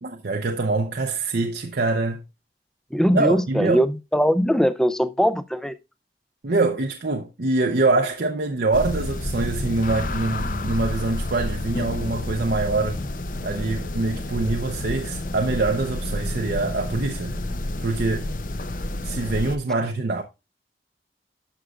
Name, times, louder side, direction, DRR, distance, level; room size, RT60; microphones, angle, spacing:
voice 1, 0.0-2.2 3.1-3.8 6.4-13.0 13.4-17.4 17.8-18.3 19.0-20.2, right 3 dB, 65° right, 0.7 m, -24 dB
voice 2, 2.9-3.9 4.1-5.8, equal, 5° left, 0.4 m, -20 dB
sound 1, 8.7-19.6, left 1 dB, 50° left, 0.6 m, -29 dB
11.5 x 6.0 x 2.4 m
head